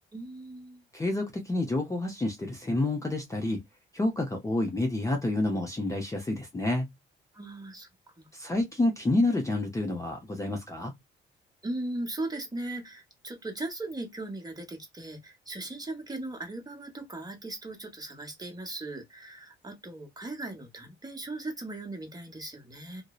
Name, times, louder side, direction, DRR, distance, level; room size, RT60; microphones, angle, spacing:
voice 1, 0.1-0.8 7.3-7.9 8.2-8.3 11.6-23.0, right 2 dB, 20° right, 1.0 m, -38 dB
voice 2, 0.9-3.6 3.9-6.9 8.3-10.9, left 2 dB, 15° left, 0.6 m, -28 dB
2.6 x 2.0 x 2.3 m
cardioid pair, 90°, 20 cm